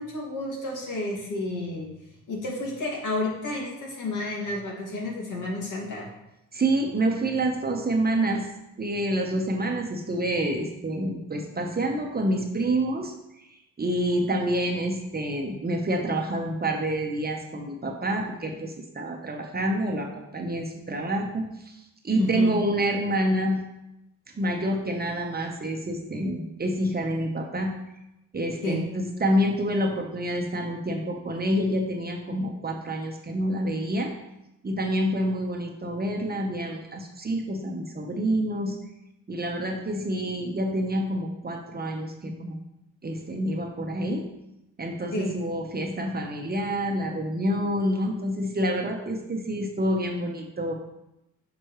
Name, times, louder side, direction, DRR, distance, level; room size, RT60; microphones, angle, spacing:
voice 1, 0.0-1.9 2.3-6.1 22.2-22.5 28.6-28.8 45.1-45.4, left 2 dB, 65° left, -2 dB, 2.2 m, -31 dB
voice 2, 6.5-8.5 8.8-13.1 13.8-23.6 24.3-27.7 28.3-34.1 34.6-38.8 39.3-42.6 43.0-44.3 44.8-50.7, right 1 dB, 30° right, 3 dB, 1.0 m, -27 dB
6.4 x 6.0 x 3.1 m, 0.89 s
cardioid pair, 75°, 33 cm